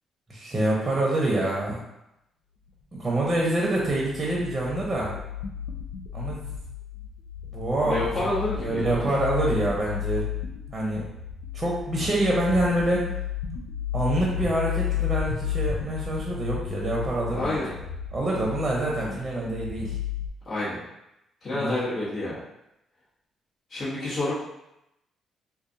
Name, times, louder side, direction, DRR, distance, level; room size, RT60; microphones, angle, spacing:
voice 1, 0.3-1.8 2.9-5.1 6.1-6.4 7.5-8.0 8.6-10.2 10.7-11.0 11.5-13.0 13.9-17.6 18.1-19.9 21.5-21.7, right 1 dB, 25° right, -3 dB, 0.9 m, -26 dB
sound 1, 3.7-20.3, left 9 dB, 90° left, 0.4 m, -33 dB
voice 2, 7.8-9.2 17.3-17.7 20.5-20.8 21.4-22.4 23.7-24.3, left 2 dB, 50° left, -9 dB, 1.4 m, -29 dB
4.4 x 2.4 x 2.7 m, 0.87 s
cardioid pair, 90°, 0 cm